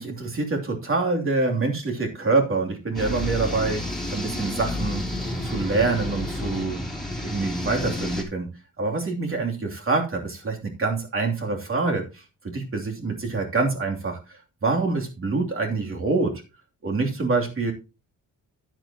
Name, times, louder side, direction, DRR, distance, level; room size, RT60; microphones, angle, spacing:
voice 1, 0.0-3.8 4.1-5.0 5.4-6.8 7.2-8.5 8.8-12.0 12.4-14.2 14.6-16.3 16.8-17.7, right 3 dB, 40° right, 2 dB, 2.9 m, -25 dB
sound 1, 2.9-8.2, left 1 dB, ahead, 3.1 m, -30 dB
10.5 x 10.5 x 2.9 m, 0.29 s
wide cardioid pair, 135°, 34 cm